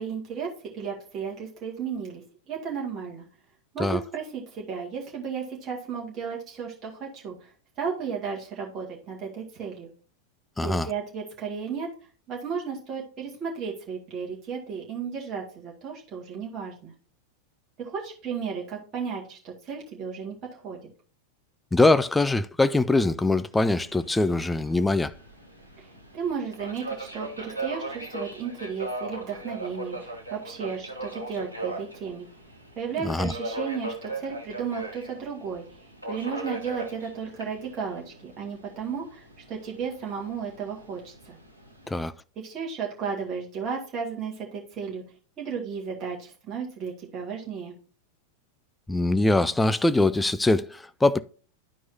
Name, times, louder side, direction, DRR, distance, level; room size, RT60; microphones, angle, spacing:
voice 1, 0.0-3.3 3.7-7.5 7.8-9.9 10.6-11.9 12.3-16.9 17.8-20.8 25.8-25.9 26.1-32.3 32.8-35.6 36.1-39.2 39.5-41.4 42.4-45.0 45.4-47.7, right 6 dB, 30° right, 2.0 m, -34 dB
voice 2, 10.6-10.9 21.7-25.1 33.0-33.3 41.9-42.1 48.9-51.2, left 2 dB, 10° left, 0.4 m, -22 dB
Subway metro underground, 23.5-42.0, right 2 dB, 90° left, 1.2 m, -39 dB
12.0 x 4.6 x 2.7 m
figure-of-eight pair, 90°, 0 cm